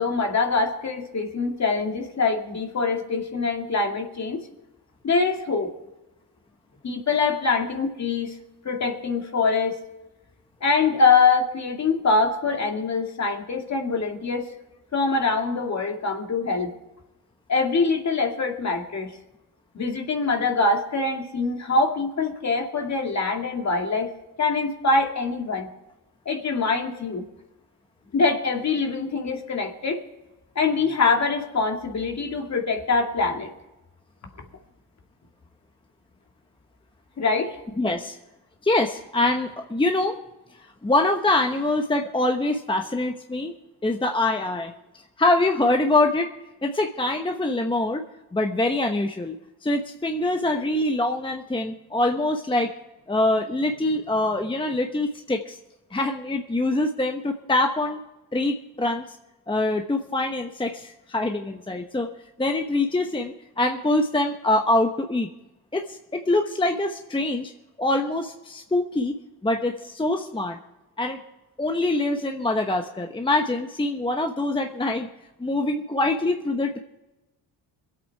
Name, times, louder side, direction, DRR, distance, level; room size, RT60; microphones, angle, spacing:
voice 1, 0.0-4.4 5.0-5.7 6.8-8.4 8.6-9.8 10.6-14.5 14.9-16.7 17.5-19.1 19.7-24.1 24.4-25.7 26.3-27.3 28.1-30.0 30.6-33.5 37.2-37.5, left 4 dB, 40° left, 3 dB, 2.3 m, -24 dB
voice 2, 37.8-38.2 38.6-40.2 40.6-43.5 43.8-44.7 45.2-46.3 46.6-48.0 48.3-49.4 49.6-52.7 53.1-55.6 55.9-58.0 58.3-59.0 59.5-62.1 62.4-65.3 65.7-67.5 67.8-69.1 69.4-70.6 71.0-71.2 71.6-75.1 75.4-76.8, left 2 dB, 10° left, 4 dB, 1.0 m, -24 dB
23.0 x 8.4 x 4.7 m, 1.0 s
cardioid pair, 85°, 40 cm